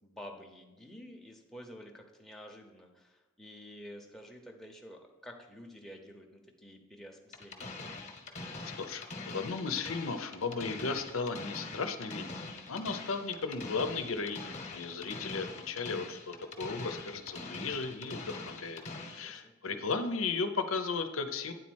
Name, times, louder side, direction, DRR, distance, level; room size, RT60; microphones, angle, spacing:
voice 1, 0.0-7.7 19.0-19.5, equal, ahead, 0 dB, 0.8 m, -50 dB
sound 1, 7.3-19.3, left 3 dB, 35° left, 1.0 m, -43 dB
voice 2, 8.6-18.8 19.1-21.5, left 4 dB, 80° left, 8 dB, 0.7 m, -35 dB
9.4 x 4.2 x 6.2 m, 1.2 s
head